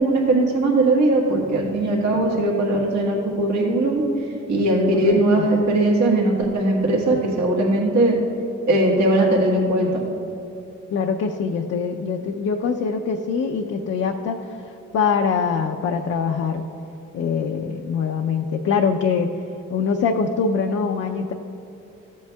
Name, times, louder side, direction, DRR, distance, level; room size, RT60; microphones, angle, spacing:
voice 1, 0.0-4.0 4.5-8.2 8.7-10.0, right 2 dB, 70° right, -3 dB, 1.7 m, -19 dB
voice 2, 4.9-5.5 10.9-16.6 17.1-19.4 19.7-21.3, left 5 dB, 55° left, 2 dB, 0.6 m, -23 dB
14.0 x 8.3 x 2.3 m, 2.9 s
cardioid pair, 90°, 30 cm